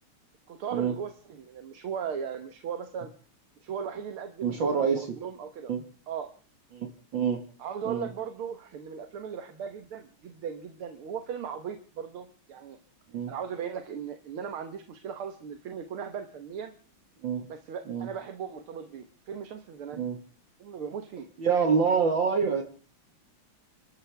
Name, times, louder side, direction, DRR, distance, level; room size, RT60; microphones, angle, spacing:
voice 1, 0.5-3.1 3.6-5.7 6.1-6.3 7.6-12.8 13.3-16.7 17.5-20.0 20.6-21.3, right 7 dB, 80° right, 7 dB, 2.1 m, -37 dB
voice 2, 4.4-5.1 5.7-5.8 6.7-7.4 7.9-8.1 13.1-13.3 17.2-17.5 17.9-18.1 19.9-20.2 21.4-22.6, right 6 dB, 60° right, 4 dB, 2.3 m, -26 dB
30.0 x 13.0 x 3.4 m, 0.42 s
omnidirectional pair, 2.3 m